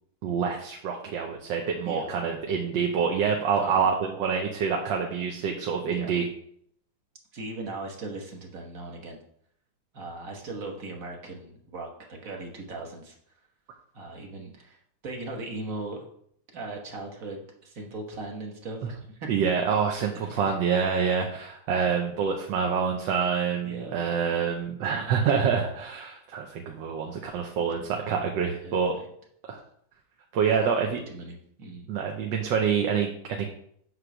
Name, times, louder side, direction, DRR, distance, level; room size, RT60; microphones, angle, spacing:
voice 1, 0.2-6.3 19.3-29.0 29.5-29.6 30.3-31.0 31.9-33.5, right 6 dB, 70° right, 1 dB, 1.3 m, -26 dB
voice 2, 3.6-3.9 5.8-6.2 7.3-9.2 9.9-13.1 13.9-14.8 15.0-16.0 16.5-19.5 20.3-20.6 23.6-24.0 24.9-25.1 28.6-29.1 30.5-31.9, right 2 dB, 45° right, 1 dB, 1.4 m, -39 dB
8.0 x 3.2 x 5.9 m, 0.67 s
omnidirectional pair, 2.3 m